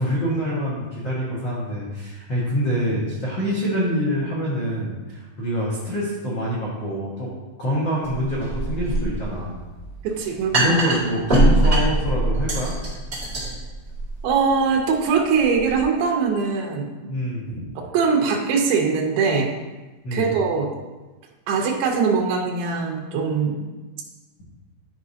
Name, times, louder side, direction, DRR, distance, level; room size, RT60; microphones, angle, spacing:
voice 1, 0.0-7.3 7.6-9.6 10.5-12.7 17.1-17.6 20.0-20.3, equal, 50° left, -7 dB, 1.4 m, -25 dB
sound 1, 8.0-15.8, right 1 dB, 20° right, 1.7 m, -23 dB
voice 2, 10.0-10.8 14.2-17.1 17.8-19.5 20.1-20.7 21.5-23.5, right 5 dB, 85° right, 0 dB, 2.7 m, -22 dB
12.0 x 4.9 x 2.8 m, 1.2 s
omnidirectional pair, 4.2 m